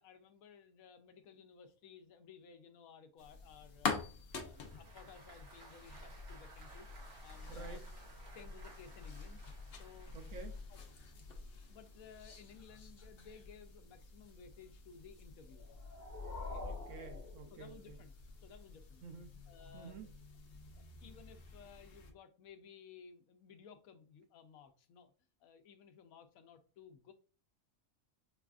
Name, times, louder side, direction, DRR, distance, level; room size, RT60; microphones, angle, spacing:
voice 1, 0.0-4.0 4.4-6.9 7.2-7.8 8.3-9.4 9.8-10.2 10.7-10.8 11.7-15.7 16.5-16.6 17.5-18.1 18.4-19.0 19.5-20.1 20.7-25.1 25.4-27.1, left 6 dB, 80° left, 1.0 m, -57 dB
sound 1, 3.2-22.1, left 4 dB, 55° left, 0.7 m, -48 dB
Applause, 4.3-10.7, right 3 dB, 50° right, 1.3 m, -59 dB
voice 2, 7.5-7.9 10.1-10.6 16.6-18.0 19.0-19.4 19.7-20.1, right 5 dB, 70° right, 0.9 m, -50 dB
sound 2, 15.5-18.1, left 3 dB, 35° left, 1.1 m, -46 dB
4.7 x 2.3 x 2.3 m
omnidirectional pair, 1.5 m